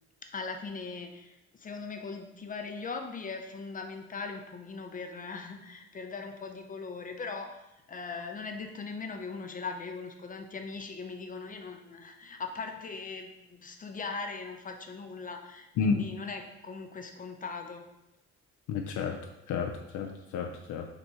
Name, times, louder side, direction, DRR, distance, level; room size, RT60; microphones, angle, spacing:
voice 1, 0.2-7.6 7.9-17.8, left 4 dB, 25° left, 4 dB, 0.6 m, -40 dB
voice 2, 18.7-19.2 19.5-20.9, left 5 dB, 75° left, 3 dB, 0.5 m, -31 dB
3.5 x 2.8 x 4.3 m, 0.90 s
cardioid pair, 90°, 30 cm